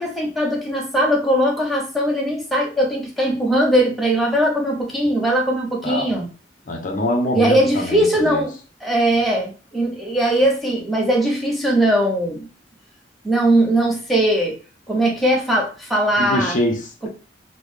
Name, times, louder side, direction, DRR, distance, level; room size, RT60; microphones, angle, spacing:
voice 1, 0.0-6.3 7.3-8.5 8.8-12.5 13.2-14.5 14.9-16.6 17.0-17.1, right 1 dB, ahead, 0.7 m, -20 dB
voice 2, 6.7-8.4 16.2-17.1, left 1 dB, 45° left, 0.6 m, -24 dB
3.7 x 2.1 x 3.1 m
head